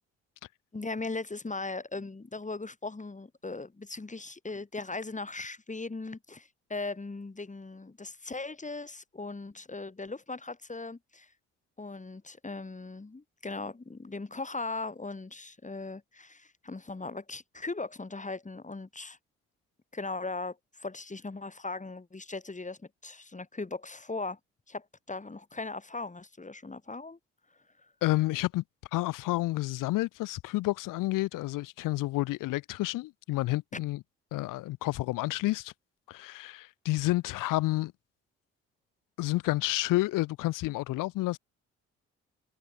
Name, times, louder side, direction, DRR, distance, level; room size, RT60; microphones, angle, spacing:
voice 1, 0.7-11.3 11.8-19.2 19.9-24.4 24.7-27.2 33.7-33.8, left 3 dB, 20° left, 5.3 m, -39 dB
voice 2, 28.0-28.6 28.9-34.0 34.3-35.7 36.1-37.9 39.2-41.4, left 18 dB, 70° left, 2.7 m, -30 dB
hypercardioid pair, 45°, 34 cm